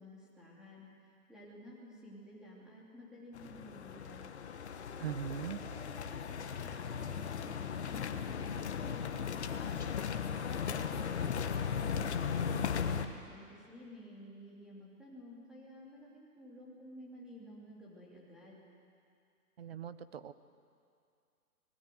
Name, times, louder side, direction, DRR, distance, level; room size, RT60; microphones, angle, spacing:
voice 1, 0.0-4.3 4.7-8.8 13.1-18.7, equal, ahead, -6 dB, 2.8 m, -53 dB
sound 1, 3.3-13.1, left 7 dB, 45° left, 1.3 m, -37 dB
voice 2, 5.0-5.6 19.6-20.3, right 8 dB, 40° right, 13 dB, 0.9 m, -40 dB
25.5 x 20.0 x 7.7 m, 2.4 s
hypercardioid pair, 165°, 46 cm